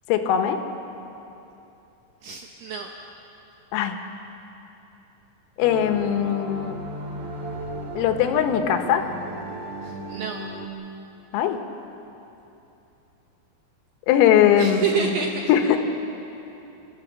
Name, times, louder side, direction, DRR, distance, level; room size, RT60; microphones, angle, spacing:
voice 1, 0.1-0.6 3.7-4.0 5.6-6.8 8.0-9.1 11.3-11.6 14.1-15.1 15.5-15.8, left 9 dB, 85° left, 6 dB, 3.9 m, -20 dB
voice 2, 2.2-2.9 9.8-10.4 14.6-15.5, right 7 dB, 75° right, 2 dB, 2.4 m, -28 dB
sound 1, 5.6-10.7, right 2 dB, 50° right, 2.3 m, -36 dB
30.0 x 14.5 x 7.4 m, 2.9 s
omnidirectional pair, 6.0 m